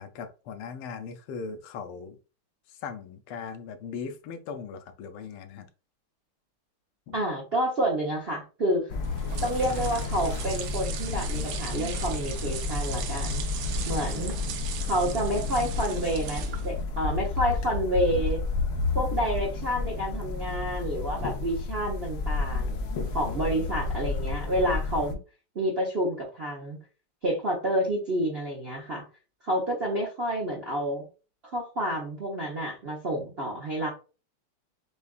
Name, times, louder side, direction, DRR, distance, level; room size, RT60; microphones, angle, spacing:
voice 1, 0.0-2.2 2.8-5.7 7.1-7.2 23.2-23.7, left 6 dB, 90° left, 1.6 m, -39 dB
voice 2, 7.1-8.9 9.4-13.4 13.9-14.3 14.9-18.4 18.9-25.2 25.5-26.8 27.2-29.0 29.4-31.0 31.5-33.9, right 1 dB, 40° right, 0.9 m, -29 dB
sound 1, 8.9-25.1, left 4 dB, 65° left, 1.3 m, -31 dB
sound 2, 9.0-16.8, right 8 dB, 75° right, 1.4 m, -39 dB
6.8 x 2.5 x 2.4 m
omnidirectional pair, 2.3 m